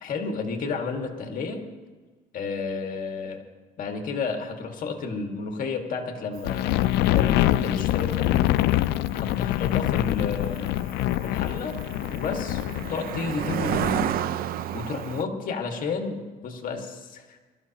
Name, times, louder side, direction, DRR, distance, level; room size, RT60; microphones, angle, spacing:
voice 1, 0.0-1.7 2.3-3.4 3.8-8.4 9.1-10.8 11.2-11.8 12.1-14.0 14.7-17.4, left 4 dB, 55° left, 4 dB, 1.9 m, -31 dB
sound 1, 6.4-14.1, left 15 dB, 80° left, 0.4 m, -25 dB
Cricket, 6.4-15.2, right 11 dB, 60° right, 0.5 m, -33 dB
22.0 x 13.5 x 3.0 m, 1.3 s
cardioid pair, 110°, 17 cm